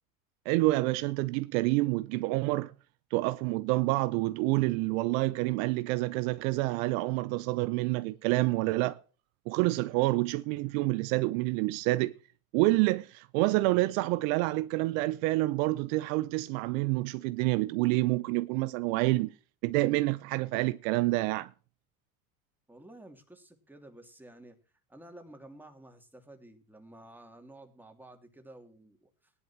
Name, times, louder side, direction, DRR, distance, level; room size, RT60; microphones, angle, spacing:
voice 1, 0.5-2.7 3.1-9.0 9.5-12.1 12.5-19.3 19.6-21.5, right 20 dB, 65° right, 0.7 m, -28 dB
voice 2, 22.7-24.6 24.9-29.3, right 1 dB, 5° right, 2.8 m, -52 dB
18.0 x 11.0 x 2.9 m
hypercardioid pair, 85°, 44 cm